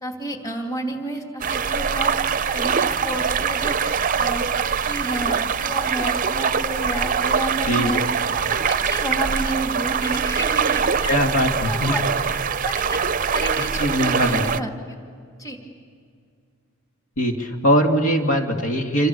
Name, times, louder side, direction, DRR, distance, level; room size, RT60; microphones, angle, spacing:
voice 1, 0.0-4.5 4.8-8.0 8.7-11.1 11.5-15.0 15.4-15.6, right 1 dB, 15° left, 2 dB, 2.8 m, -31 dB
sound 1, 1.4-14.6, right 6 dB, 40° right, 0.6 m, -23 dB
voice 2, 11.1-12.0 13.8-14.4 17.2-19.1, equal, 70° left, 3 dB, 2.6 m, -21 dB
28.0 x 26.5 x 7.0 m, 2.2 s
head